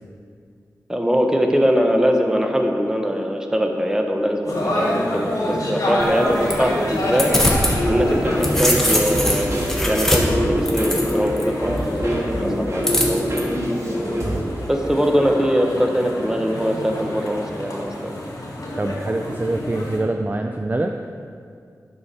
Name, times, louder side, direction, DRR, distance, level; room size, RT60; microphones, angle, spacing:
voice 1, 0.9-7.4 7.9-9.5 9.9-13.5 14.7-18.1, equal, 10° right, 3 dB, 1.0 m, -22 dB
sound 1, 4.4-20.0, left 1 dB, 70° left, 2.5 m, -27 dB
sound 2, 6.0-7.8 8.1-11.4 12.8-13.4, left 1 dB, 5° left, 1.4 m, -22 dB
sound 3, 7.3-14.4, equal, 50° right, 1.9 m, -26 dB
voice 2, 14.2-14.6 18.8-20.9, right 2 dB, 30° right, 4 dB, 0.4 m, -25 dB
9.7 x 6.9 x 4.3 m, 2.3 s
wide cardioid pair, 60°, 6 cm